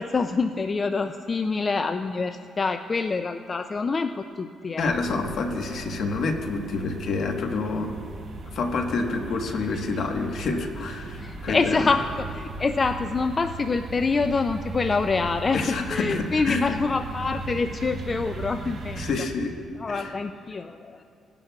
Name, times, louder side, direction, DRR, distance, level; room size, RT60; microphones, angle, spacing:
voice 1, 0.0-4.9 11.2-19.0 19.8-21.0, left 4 dB, 35° left, 8 dB, 0.4 m, -26 dB
voice 2, 4.8-8.0 8.5-11.9 15.5-16.7 19.0-19.6 19.9-20.1, left 3 dB, 65° left, 3 dB, 1.2 m, -28 dB
sound 1, 4.8-19.2, right 3 dB, 45° right, 1.2 m, -38 dB
18.0 x 10.5 x 2.3 m, 2.5 s
cardioid pair, 90°, 0 cm